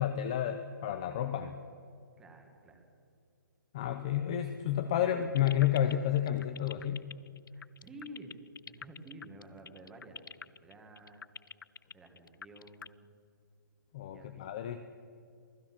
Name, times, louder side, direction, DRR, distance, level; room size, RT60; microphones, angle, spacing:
voice 1, 0.0-1.5 3.7-7.1 13.9-14.8, left 10 dB, 15° left, 8 dB, 0.5 m, -31 dB
voice 2, 2.2-2.8 7.5-11.2 11.9-13.1 14.1-14.5, right 1 dB, 5° right, 4 dB, 1.5 m, -51 dB
sound 1, 5.2-12.9, left 6 dB, 75° left, 0.5 m, -45 dB
28.0 x 17.5 x 5.9 m, 2.4 s
hypercardioid pair, 180°, 11 cm